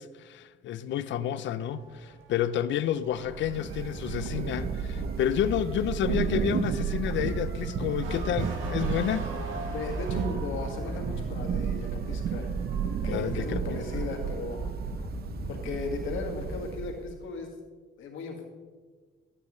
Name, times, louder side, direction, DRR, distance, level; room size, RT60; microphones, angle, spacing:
voice 1, 0.0-9.3 13.1-13.8, left 10 dB, 70° left, 0.5 m, -30 dB
Motor vehicle (road) / Siren, 1.5-15.0, right 3 dB, 90° right, 1.7 m, -45 dB
Thunder / Rain, 3.1-17.2, right 8 dB, 50° right, 0.6 m, -33 dB
sound 1, 4.2-16.6, left 2 dB, 25° left, 0.8 m, -40 dB
voice 2, 9.7-12.5 13.0-14.6 15.5-17.5 18.0-18.5, left 4 dB, 85° left, 1.8 m, -36 dB
12.5 x 8.9 x 3.1 m
cardioid pair, 90°, 20 cm